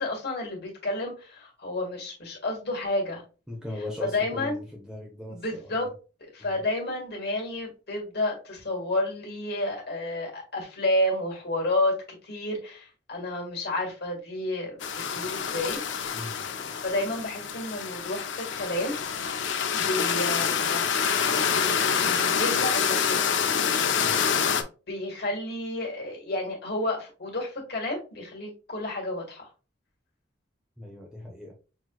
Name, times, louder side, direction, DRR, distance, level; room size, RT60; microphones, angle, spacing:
voice 1, 0.0-3.2 3.7-4.6 5.3-5.9 6.3-12.0 12.2-15.8 16.8-18.9 19.7-23.4 24.9-29.5, left 1 dB, 55° left, -1 dB, 1.8 m, -31 dB
voice 2, 3.5-5.4 6.4-6.6 16.1-16.4 24.0-24.3 30.8-31.5, left 1 dB, 5° right, -2 dB, 0.7 m, -38 dB
sound 1, 14.8-24.6, left 7 dB, 70° left, 0.6 m, -26 dB
5.9 x 3.0 x 2.3 m, 0.34 s
head